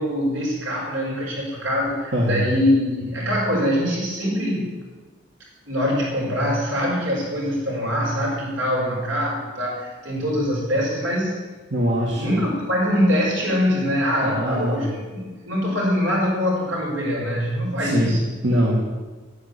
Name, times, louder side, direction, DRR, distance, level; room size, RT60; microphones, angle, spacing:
voice 1, 0.0-4.7 5.7-11.4 12.2-18.2, equal, 85° right, -3 dB, 5.7 m, -23 dB
voice 2, 2.1-2.5 11.7-12.4 14.2-14.9 17.8-18.1 18.4-18.8, equal, 70° right, -4 dB, 2.2 m, -22 dB
10.0 x 9.6 x 8.5 m, 1.3 s
head